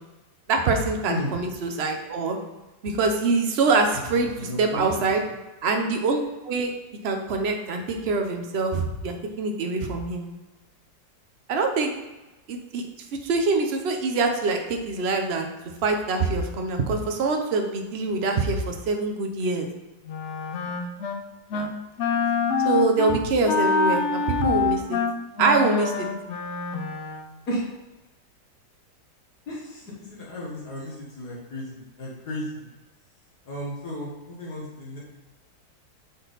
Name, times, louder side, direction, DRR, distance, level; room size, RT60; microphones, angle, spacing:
voice 1, 0.5-2.4 2.8-4.3 4.6-5.2 5.6-6.7 7.0-10.3 11.5-11.9 12.5-12.8 13.2-15.5 15.8-19.7 21.5-21.7 22.6-25.0 25.4-26.1, right 3 dB, 55° right, 4 dB, 0.7 m, -24 dB
voice 2, 4.1-5.1 27.5-27.7 29.5-32.7 33.4-35.0, equal, 60° left, -5 dB, 1.9 m, -34 dB
Wind instrument woodwind instrument, 20.1-21.2 21.5-21.7 22.0-27.3, left 4 dB, 80° left, 0.6 m, -26 dB
6.4 x 4.0 x 4.0 m, 1.1 s
omnidirectional pair, 1.9 m